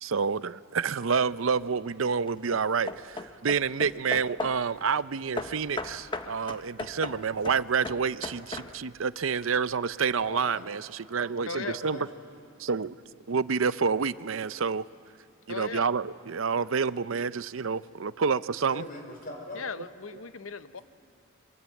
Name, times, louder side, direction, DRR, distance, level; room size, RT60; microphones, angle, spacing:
voice 1, 0.0-12.0 12.6-13.0 13.3-14.9 15.5-18.9, right 5 dB, 75° right, 0.6 m, -28 dB
sound 1, 0.6-17.3, right 1 dB, 50° right, 3.1 m, -58 dB
Hammer / Wood, 1.1-1.6 2.3-4.7 5.4-9.0, left 2 dB, 25° left, 0.9 m, -38 dB
voice 2, 10.2-10.6 11.5-12.1 18.7-19.6, left 1 dB, 45° left, 5.6 m, -41 dB
voice 3, 11.4-11.8 15.5-15.9 19.5-20.8, left 5 dB, 70° left, 0.9 m, -37 dB
29.5 x 23.5 x 8.4 m
head